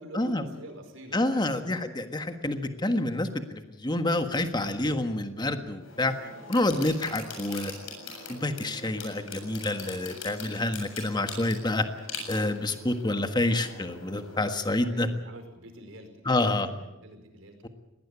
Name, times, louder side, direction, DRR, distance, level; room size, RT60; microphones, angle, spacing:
voice 1, 0.0-1.6 10.5-10.6 14.8-17.7, right 1 dB, 75° right, 6 dB, 5.0 m, -46 dB
voice 2, 1.1-6.1 6.5-7.7 8.3-11.8 12.3-15.1 16.2-16.7, left 2 dB, 20° left, 7 dB, 1.5 m, -28 dB
sound 1, 5.8-14.4, left 4 dB, 90° left, 7.3 m, -42 dB
21.0 x 18.5 x 8.5 m, 0.99 s
head